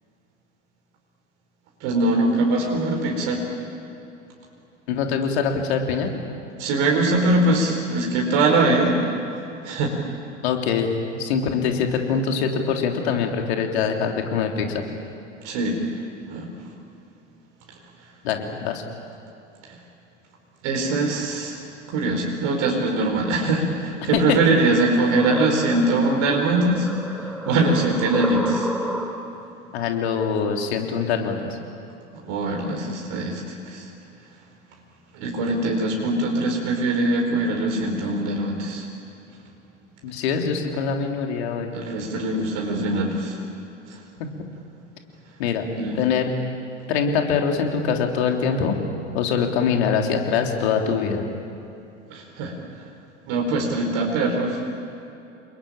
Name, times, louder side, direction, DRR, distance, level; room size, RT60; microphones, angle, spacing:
voice 1, 1.8-3.4 6.6-9.1 9.6-9.9 15.4-15.9 16.3-16.5 19.6-19.8 20.6-21.6 21.9-26.9 27.2-28.7 32.1-33.9 35.1-38.9 41.7-43.4 43.9-44.0 45.7-46.0 52.1-52.8 53.2-54.6, right 2 dB, 50° right, 1 dB, 4.8 m, -22 dB
voice 2, 4.9-6.1 10.4-14.8 18.2-18.8 24.1-24.4 29.7-31.5 40.0-41.7 45.4-45.6 46.0-46.3 46.9-48.8 49.1-51.2, left 6 dB, 60° left, 3 dB, 3.5 m, -23 dB
sound 1, 24.4-29.5, equal, ahead, 3.6 m, -32 dB
29.5 x 21.5 x 9.0 m, 2.8 s
figure-of-eight pair, 80°, 36 cm